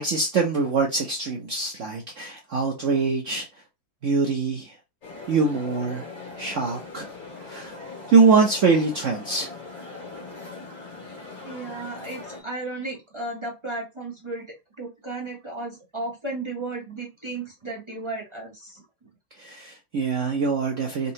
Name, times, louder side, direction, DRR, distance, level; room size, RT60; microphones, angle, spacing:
voice 1, 0.0-3.5 4.0-4.7 5.3-6.1 6.4-7.1 7.4-7.8 8.1-9.5 19.4-21.1, right 4 dB, 70° right, 0.7 m, -23 dB
sound 1, 5.0-12.4, left 3 dB, 50° left, 2.3 m, -40 dB
voice 2, 11.5-14.4 14.8-18.8, right 2 dB, 35° right, 0.5 m, -34 dB
4.1 x 2.7 x 2.7 m
omnidirectional pair, 2.1 m